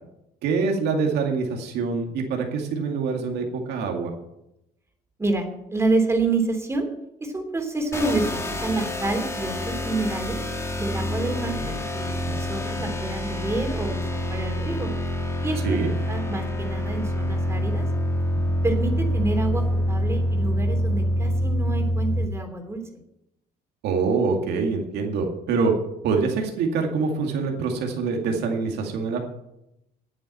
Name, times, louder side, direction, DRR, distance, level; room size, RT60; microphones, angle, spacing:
voice 1, 0.4-4.1 15.6-15.9 23.8-25.7 26.0-29.2, right 4 dB, 80° right, 2 dB, 2.3 m, -25 dB
voice 2, 5.2-6.9 7.2-10.4 10.8-14.9 15.4-15.8 16.1-17.9 18.6-22.8, right 2 dB, 15° right, 4 dB, 3.0 m, -28 dB
sound 1, 7.9-22.3, equal, 15° left, 1.8 m, -26 dB
9.4 x 8.7 x 9.1 m, 0.85 s
cardioid pair, 110°, 17 cm